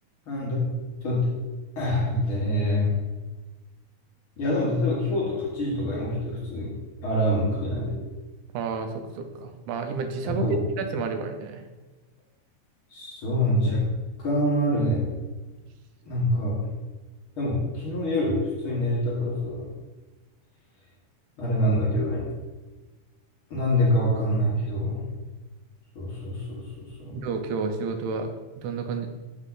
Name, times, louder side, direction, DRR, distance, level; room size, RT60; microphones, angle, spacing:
voice 1, 0.3-0.7 1.0-1.3 1.8-3.0 4.4-6.7 7.0-7.9 10.2-10.6 12.9-13.9 14.2-15.0 16.1-16.7 17.4-19.7 21.4-22.2 23.5-25.0 26.0-27.2, left 1 dB, 55° left, -5 dB, 1.8 m, -25 dB
voice 2, 8.5-11.6 27.1-28.3 28.6-29.1, right 4 dB, 85° right, 7 dB, 2.1 m, -30 dB
8.2 x 3.6 x 3.8 m, 1.2 s
omnidirectional pair, 3.5 m